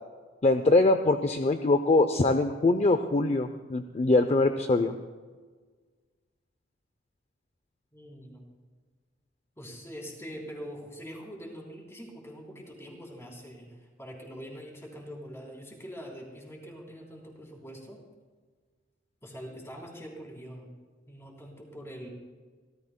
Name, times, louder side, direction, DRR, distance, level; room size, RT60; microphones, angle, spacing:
voice 1, 0.4-5.0, left 2 dB, 35° left, 8 dB, 0.5 m, -23 dB
voice 2, 7.9-8.4 9.6-18.0 19.2-20.7 21.1-22.1, equal, 15° left, -1 dB, 3.2 m, -44 dB
27.0 x 13.5 x 2.2 m, 1.5 s
head